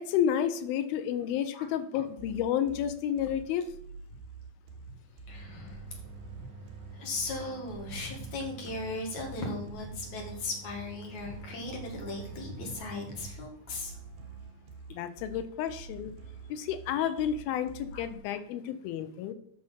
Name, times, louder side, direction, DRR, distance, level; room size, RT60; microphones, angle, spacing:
voice 1, 0.0-3.7 14.9-16.1 16.5-19.3, left 9 dB, 90° left, 11 dB, 2.7 m, -31 dB
sound 1, 2.2-18.2, right 4 dB, 85° right, 3.5 m, -48 dB
voice 2, 5.3-5.8 6.4-6.5 6.9-14.2 17.9-18.0, left 2 dB, 55° left, 1 dB, 3.3 m, -37 dB
sound 2, 5.3-13.3, right 4 dB, 45° right, 1.5 m, -48 dB
10.5 x 6.4 x 5.6 m, 0.66 s
omnidirectional pair, 4.2 m